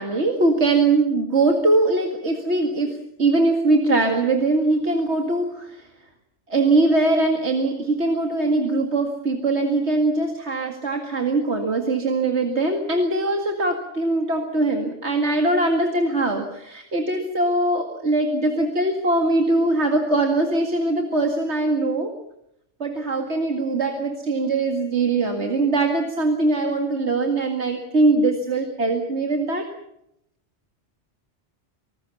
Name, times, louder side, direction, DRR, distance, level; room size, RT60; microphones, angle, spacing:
voice 1, 0.0-5.8 6.5-22.1 22.8-29.7, right 2 dB, 70° right, 4 dB, 2.4 m, -21 dB
26.0 x 19.0 x 7.1 m, 0.80 s
omnidirectional pair, 1.2 m